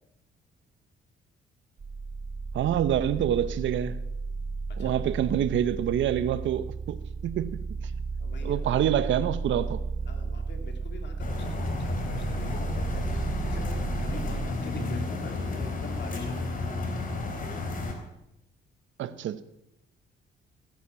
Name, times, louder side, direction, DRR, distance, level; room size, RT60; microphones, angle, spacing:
sound 1, 1.8-14.5, right 4 dB, 30° right, 0.6 m, -34 dB
voice 1, 2.5-4.0 4.8-7.6 8.4-9.8 14.8-15.0 19.0-19.4, right 10 dB, 75° right, 1.0 m, -27 dB
voice 2, 8.2-8.9 10.0-16.7 17.6-17.9, left 4 dB, 60° left, 2.9 m, -45 dB
sound 2, 11.2-17.9, left 2 dB, 45° left, 3.8 m, -32 dB
16.0 x 10.5 x 7.1 m
cardioid pair, 90°, 20 cm